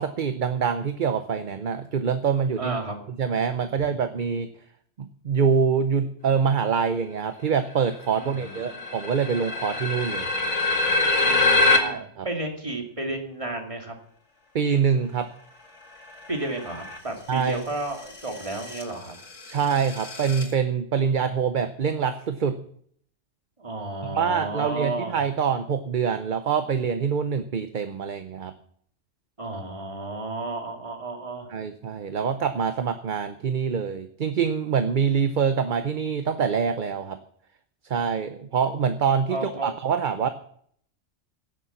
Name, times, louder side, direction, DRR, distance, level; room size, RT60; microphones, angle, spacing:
voice 1, 0.0-2.8 3.2-4.5 5.0-10.3 11.7-12.3 14.5-15.3 17.3-17.6 19.5-22.6 24.0-28.5 31.5-37.2 37.9-40.3, right 6 dB, 50° right, 9 dB, 0.8 m, -25 dB
voice 2, 2.6-3.0 8.2-8.8 11.2-13.9 16.3-19.1 23.6-25.2 29.4-31.5 39.3-39.7, right 2 dB, 25° right, 2 dB, 2.5 m, -32 dB
sound 1, 7.8-7.9 8.0-11.8 16.0-17.0 17.8-20.5, left 3 dB, 85° left, 2.5 m, -25 dB
16.5 x 7.1 x 7.2 m, 0.63 s
omnidirectional pair, 1.2 m